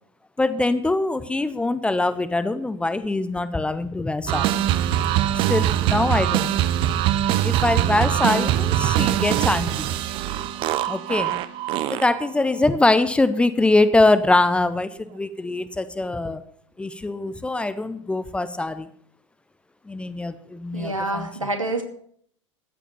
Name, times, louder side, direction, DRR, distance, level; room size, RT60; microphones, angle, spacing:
voice 1, 0.4-4.5 5.5-6.6 7.4-9.9 10.9-11.4 11.9-16.4 16.8-18.9 19.9-21.3, left 2 dB, 5° left, 13 dB, 0.7 m, -23 dB
sound 1, 4.3-12.3, right 12 dB, 30° right, 0.8 m, -22 dB
voice 2, 20.7-21.8, right 2 dB, 85° right, 3 dB, 2.6 m, -27 dB
14.5 x 8.5 x 6.9 m, 0.62 s
figure-of-eight pair, 95°, 16 cm